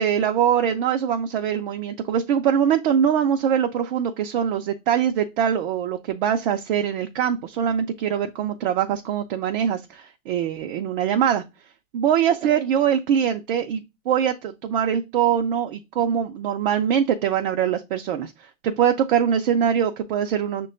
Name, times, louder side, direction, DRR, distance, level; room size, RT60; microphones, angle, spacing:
voice 1, 0.0-11.4 11.9-20.7, right 8 dB, 45° right, 4 dB, 0.5 m, -23 dB
6.0 x 2.2 x 3.7 m, 0.25 s
hypercardioid pair, 135°, 38 cm